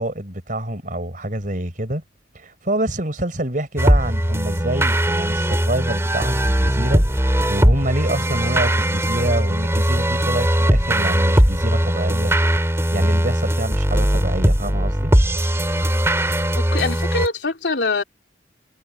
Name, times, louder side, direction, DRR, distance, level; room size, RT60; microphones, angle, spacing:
voice 1, 0.0-2.0 2.3-12.3 12.9-15.1, right 1 dB, 45° right, 4.8 m, -26 dB
sound 1, 3.8-17.3, equal, 15° right, 3.0 m, -19 dB
voice 2, 16.6-18.0, left 3 dB, 75° left, 3.0 m, -23 dB
head